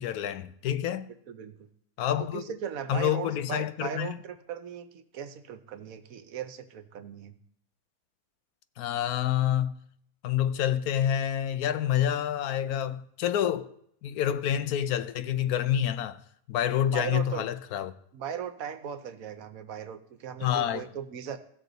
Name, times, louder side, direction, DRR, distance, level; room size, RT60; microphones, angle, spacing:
voice 1, 0.0-1.1 2.0-2.4 2.9-4.2 8.8-9.7 10.2-13.7 14.0-16.2 16.5-17.9 20.4-20.8, left 10 dB, 90° left, 1.1 m, -28 dB
voice 2, 1.1-1.7 2.2-7.4 16.9-17.4 18.1-21.4, right 8 dB, 75° right, 1.2 m, -38 dB
16.5 x 6.4 x 4.0 m
omnidirectional pair, 1.5 m